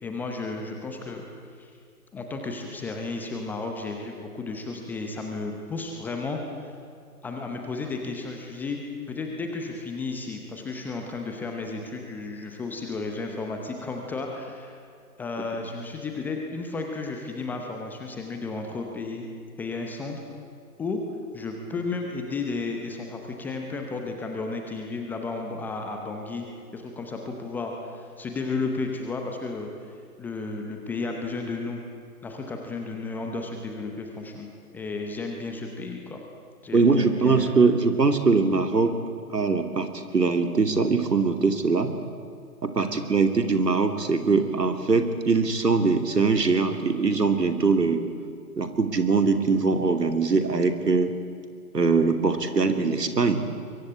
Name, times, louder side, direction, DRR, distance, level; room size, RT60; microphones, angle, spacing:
voice 1, 0.0-1.2 1.6-1.7 2.1-6.7 7.2-8.8 9.1-14.8 15.2-19.2 19.6-20.2 20.8-21.0 21.3-26.5 26.7-31.8 32.2-36.2 36.6-37.5 42.8-43.1, left 3 dB, 5° left, 2 dB, 0.7 m, -33 dB
voice 2, 36.7-39.0 39.3-41.9 42.6-48.1 48.6-51.1 51.7-53.4, right 4 dB, 80° right, 7 dB, 2.8 m, -22 dB
24.0 x 23.0 x 8.8 m, 2.3 s
figure-of-eight pair, 135°, 48 cm